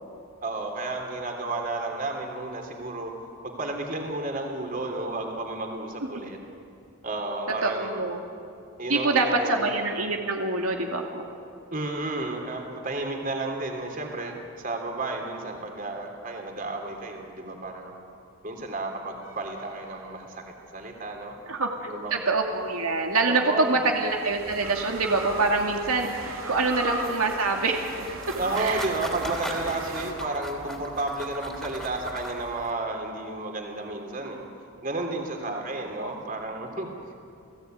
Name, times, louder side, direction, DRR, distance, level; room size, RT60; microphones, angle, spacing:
voice 1, 0.4-3.1 3.4-6.4 7.0-8.1 8.8-9.7 11.7-17.9 18.4-20.2 20.7-21.3 21.9-22.1 23.2-23.8 28.3-34.5 34.8-37.1, right 2 dB, 40° right, 2 dB, 3.4 m, -32 dB
voice 2, 7.6-8.2 8.9-11.2 21.5-27.9 28.6-28.9 36.0-36.1, right 3 dB, 90° right, 2 dB, 2.5 m, -25 dB
sound 1, 19.2-20.7 22.6-30.1, right 2 dB, 70° right, 3.4 m, -38 dB
sound 2, 27.8-32.7, equal, ahead, 3.1 m, -39 dB
29.5 x 17.5 x 9.4 m, 2.5 s
head